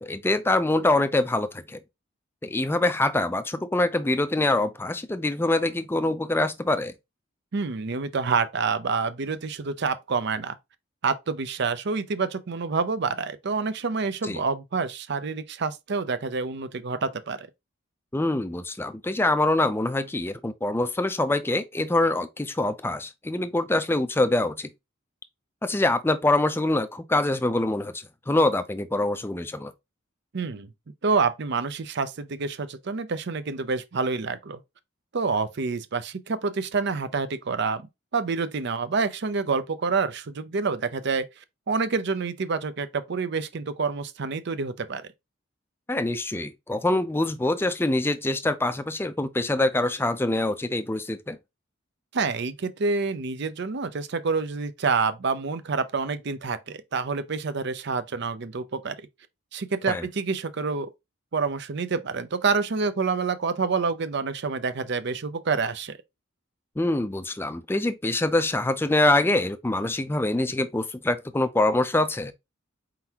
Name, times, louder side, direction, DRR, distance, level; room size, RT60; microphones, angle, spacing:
voice 1, 0.0-1.8 2.4-6.9 14.2-14.4 18.1-24.7 25.6-29.7 45.9-51.4 59.9-60.1 66.8-72.3, left 2 dB, 10° left, 0.4 m, -25 dB
voice 2, 7.5-10.6 11.0-17.5 30.3-30.7 31.0-34.6 35.1-37.8 38.1-41.2 41.7-45.0 52.1-59.0 59.5-60.9 61.3-66.0, right 4 dB, 55° right, 0.6 m, -27 dB
4.4 x 3.9 x 2.8 m
head